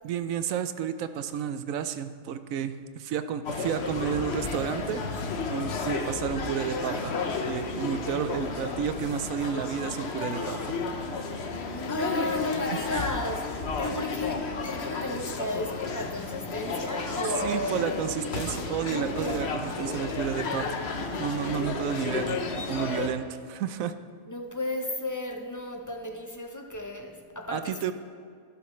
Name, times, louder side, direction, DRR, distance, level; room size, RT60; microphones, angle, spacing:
voice 1, 0.0-5.0 5.5-7.1 7.4-10.6 17.4-20.8 21.2-23.9 27.5-27.9, right 8 dB, 75° right, 11 dB, 1.0 m, -31 dB
sound 1, 3.4-23.1, left 4 dB, 55° left, 1.1 m, -32 dB
voice 2, 11.7-18.1 24.3-27.9, left 2 dB, 25° left, 3 dB, 0.4 m, -34 dB
12.0 x 11.5 x 3.2 m, 2.1 s
omnidirectional pair, 1.4 m